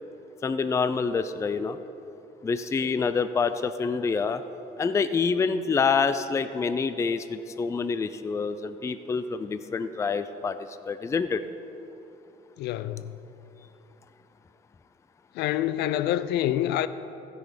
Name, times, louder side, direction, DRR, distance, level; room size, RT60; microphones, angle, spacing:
voice 1, 0.4-1.8 2.4-4.4 4.8-10.6 10.9-11.4, left 5 dB, 15° left, 0.3 m, -27 dB
voice 2, 12.6-13.1 15.3-16.9, left 12 dB, 80° left, 0.4 m, -26 dB
15.5 x 6.2 x 5.1 m
cardioid pair, 110°, 17 cm